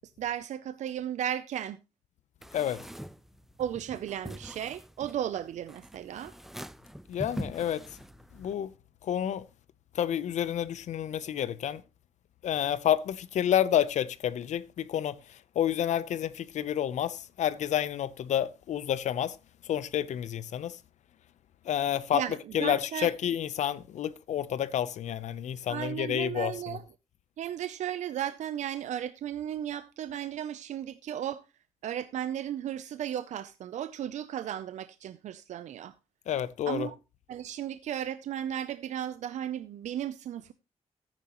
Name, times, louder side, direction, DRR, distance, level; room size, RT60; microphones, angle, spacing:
voice 1, 0.2-1.8 3.6-6.3 22.1-23.1 25.7-26.8 27.4-31.4 31.8-35.9 36.7-37.0 37.3-40.5, right 10 dB, 85° right, 0.5 m, -35 dB
sound 1, 2.4-8.5, equal, 5° right, 0.4 m, -44 dB
voice 2, 7.1-7.8 8.4-8.7 9.0-9.4 9.9-11.8 12.4-15.2 15.6-19.4 19.7-20.8 21.7-22.2 22.5-26.8 36.3-36.9, left 10 dB, 80° left, 0.7 m, -29 dB
14.0 x 9.0 x 3.0 m
wide cardioid pair, 135°, 12 cm